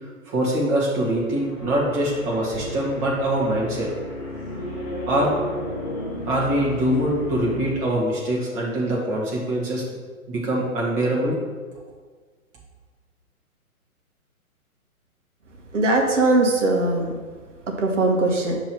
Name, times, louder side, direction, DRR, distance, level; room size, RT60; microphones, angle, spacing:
voice 1, 0.3-3.9 5.1-5.3 6.2-9.8 10.3-11.4, right 1 dB, 20° right, -5 dB, 1.4 m, -23 dB
sound 1, 1.1-7.7, left 1 dB, 20° left, 0.6 m, -33 dB
voice 2, 15.7-17.1 17.7-18.6, right 2 dB, 55° right, 2 dB, 1.2 m, -20 dB
6.1 x 3.1 x 5.5 m, 1.5 s
figure-of-eight pair, 130°, 43 cm